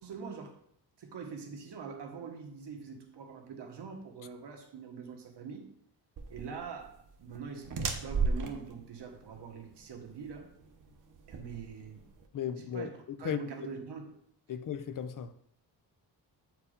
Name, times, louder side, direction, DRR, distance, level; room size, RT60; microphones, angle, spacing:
voice 1, 0.0-0.6 1.0-5.7 6.3-10.5 11.3-12.1 12.7-12.9 13.2-14.1, right 5 dB, 75° right, 1.4 m, -44 dB
sound 1, 6.2-12.3, right 4 dB, 50° right, 0.9 m, -36 dB
voice 2, 12.3-13.4 14.5-15.3, left 8 dB, 50° left, 0.5 m, -36 dB
8.4 x 4.7 x 5.0 m
wide cardioid pair, 180°, 41 cm